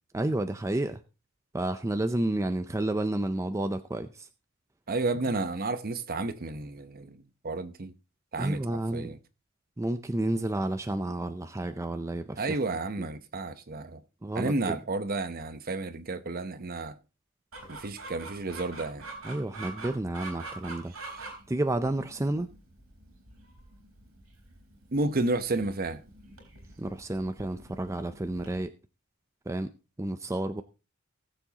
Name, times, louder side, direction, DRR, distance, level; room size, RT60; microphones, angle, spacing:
voice 1, 0.1-1.0 1.5-4.3 8.4-9.1 9.8-12.6 13.0-13.1 14.2-14.8 19.2-20.9 21.5-22.5 26.8-28.7 29.5-29.7 30.0-30.6, right 1 dB, 15° right, 0.5 m, -30 dB
voice 2, 4.9-7.9 8.3-9.2 12.4-14.0 14.3-17.0 17.7-19.0 20.9-21.3 24.9-26.0, right 2 dB, 45° right, 0.8 m, -32 dB
Chicken rooster, 17.5-28.6, right 3 dB, 80° right, 3.7 m, -45 dB
19.0 x 7.1 x 2.9 m
head